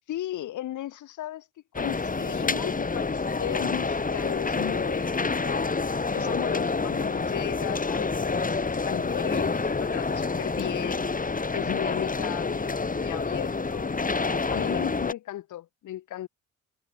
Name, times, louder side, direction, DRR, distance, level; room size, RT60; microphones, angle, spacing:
voice 1, 0.1-1.5 1.8-11.0 11.5-13.9 14.5-16.3, left 13 dB, 80° left, 4.7 m, -36 dB
sound 1, 1.7-15.1, left 4 dB, 25° left, 7.2 m, -28 dB
cardioid pair, 90°, 30 cm